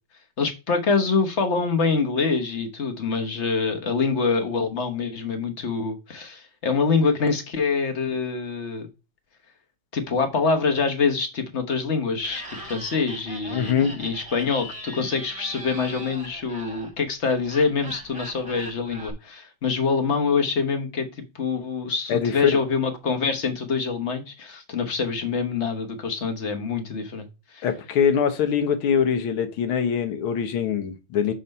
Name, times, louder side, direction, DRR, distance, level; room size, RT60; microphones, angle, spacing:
voice 1, 0.4-8.9 9.9-27.6, left 4 dB, 45° left, 1.1 m, -25 dB
Laughter, 12.2-19.1, right 1 dB, 20° right, 1.3 m, -40 dB
voice 2, 13.5-13.9 22.1-22.5 27.6-31.3, left 7 dB, 80° left, 1.7 m, -23 dB
6.3 x 4.3 x 5.4 m
omnidirectional pair, 2.3 m